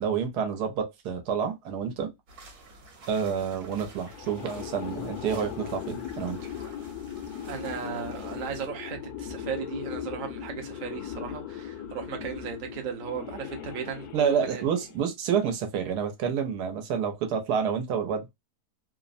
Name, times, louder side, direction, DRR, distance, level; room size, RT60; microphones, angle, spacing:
voice 1, 0.0-2.1 3.1-6.4 14.1-18.3, right 7 dB, 85° right, 1.3 m, -28 dB
sound 1, 2.3-8.7, right 3 dB, 70° right, 1.3 m, -50 dB
sound 2, 4.0-15.1, left 9 dB, 80° left, 1.1 m, -38 dB
voice 2, 7.5-14.6, right 7 dB, 50° right, 0.6 m, -36 dB
3.1 x 2.0 x 2.5 m
omnidirectional pair, 1.7 m